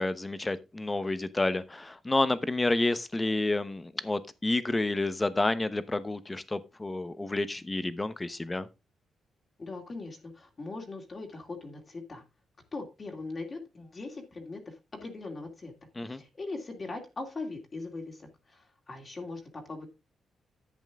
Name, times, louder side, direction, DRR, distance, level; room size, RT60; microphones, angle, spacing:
voice 1, 0.0-8.7 16.0-16.2, left 2 dB, 15° left, 0.9 m, -29 dB
voice 2, 9.6-12.2 12.7-14.7 15.0-15.7 16.1-19.9, left 3 dB, 30° left, 2.5 m, -40 dB
11.0 x 8.2 x 3.5 m
cardioid pair, 125°, 0 cm